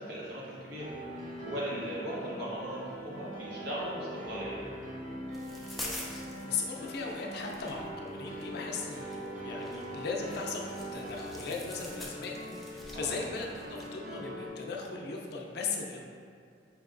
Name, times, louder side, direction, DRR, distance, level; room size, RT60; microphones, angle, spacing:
voice 1, 0.0-4.6 12.9-13.2, equal, 65° right, -6 dB, 1.0 m, -38 dB
Piano, 0.8-14.5, equal, 50° right, 0.6 m, -42 dB
sound 1, 5.3-13.9, left 1 dB, ahead, 0.4 m, -47 dB
voice 2, 5.6-6.0 6.4-16.0, left 4 dB, 65° left, 0 dB, 0.5 m, -38 dB
4.6 x 2.8 x 2.5 m, 2.3 s
head